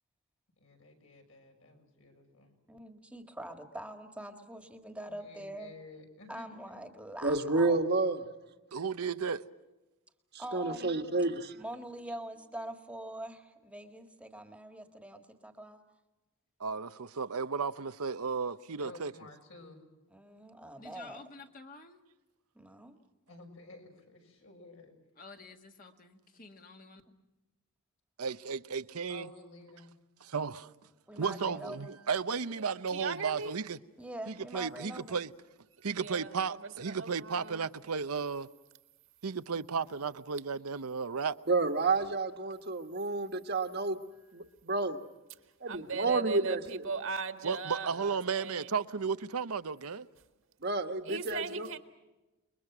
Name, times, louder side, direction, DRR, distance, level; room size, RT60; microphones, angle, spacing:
voice 1, 0.6-2.5 5.1-6.8 18.8-19.8 23.3-24.9 29.1-29.9 32.8-33.6, left 2 dB, 65° left, 6.2 m, -53 dB
voice 2, 2.7-5.7 6.3-7.8 10.4-11.1 11.6-15.8 20.1-21.2 22.5-23.0 31.1-32.0 34.0-35.2, right 1 dB, 5° right, 1.7 m, -44 dB
voice 3, 7.2-8.2 10.5-11.6 41.5-44.0 44.3-45.0 45.6-46.8 50.6-51.7, right 3 dB, 45° right, 1.5 m, -30 dB
voice 4, 8.7-9.4 16.6-19.1 28.2-29.3 30.2-30.7 31.2-33.8 34.3-35.3 35.8-38.5 39.2-41.3 47.4-50.1, right 5 dB, 85° right, 0.8 m, -34 dB
voice 5, 20.8-22.0 25.2-27.0, left 3 dB, 40° left, 1.9 m, -51 dB
voice 6, 32.9-33.5 35.9-36.6 36.9-37.6 45.7-48.7 51.0-51.8, right 5 dB, 60° right, 1.8 m, -38 dB
29.5 x 22.0 x 6.1 m
head